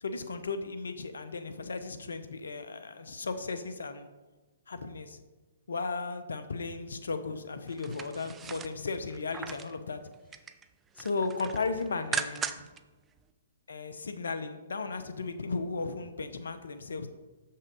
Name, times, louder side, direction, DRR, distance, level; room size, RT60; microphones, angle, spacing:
voice 1, 0.0-4.1 4.7-5.2 5.7-10.0 11.0-12.7 13.7-17.1, left 4 dB, 75° left, 9 dB, 0.8 m, -35 dB
sound 1, 7.7-9.8 10.1-10.6 11.0-12.8 13.2-13.3, right 6 dB, 15° right, 0.4 m, -38 dB
7.0 x 5.8 x 4.9 m, 1.2 s
figure-of-eight pair, 125°, 0 cm